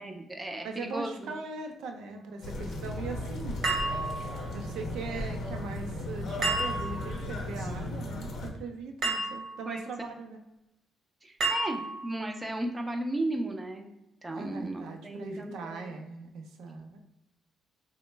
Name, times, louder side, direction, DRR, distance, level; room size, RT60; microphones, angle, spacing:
voice 1, 0.0-1.3 9.7-9.9 11.2-13.9 14.2-16.0, right 1 dB, 20° right, 4 dB, 0.4 m, -35 dB
voice 2, 0.6-3.6 4.5-10.4 14.3-17.0, right 4 dB, 80° right, 4 dB, 0.4 m, -40 dB
sound 1, 2.4-8.5, left 1 dB, 65° left, 0.6 m, -36 dB
sound 2, 3.6-4.6 6.4-7.2 9.0-9.7 11.4-12.2, right 3 dB, 60° right, 0.9 m, -31 dB
3.0 x 2.1 x 3.2 m, 0.90 s
cardioid pair, 90°, 0 cm